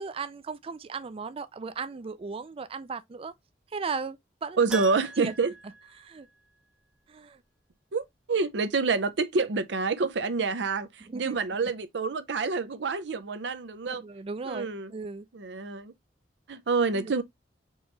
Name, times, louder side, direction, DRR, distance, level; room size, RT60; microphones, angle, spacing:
voice 1, 0.0-3.3 3.7-4.6 5.2-5.3 6.0-6.3 7.1-7.4 11.1-11.4 13.9-15.3 16.9-17.1, right 4 dB, 30° right, 0.4 m, -36 dB
voice 2, 4.6-5.5 7.9-14.0 14.4-14.9 15.3-15.9 16.5-17.2, right 4 dB, 80° right, 0.6 m, -28 dB
Keyboard (musical), 4.7-6.8 7.0-7.1 9.8-9.9 10.1-10.2, right 4 dB, 5° right, 0.8 m, -41 dB
4.5 x 2.9 x 3.3 m
head